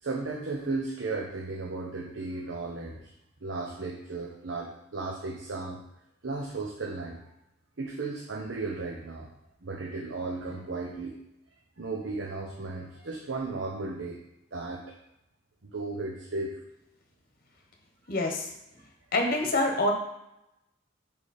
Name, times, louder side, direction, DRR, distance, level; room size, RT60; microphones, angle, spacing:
voice 1, 0.0-3.1 3.4-5.8 6.2-7.2 7.8-9.3 9.6-11.2 11.8-14.2 14.5-14.8 15.6-16.5, right 3 dB, 85° right, 0 dB, 0.8 m, -35 dB
voice 2, 18.1-18.5 19.1-19.9, left 2 dB, 50° left, 2 dB, 1.2 m, -26 dB
5.2 x 5.0 x 4.3 m, 0.84 s
head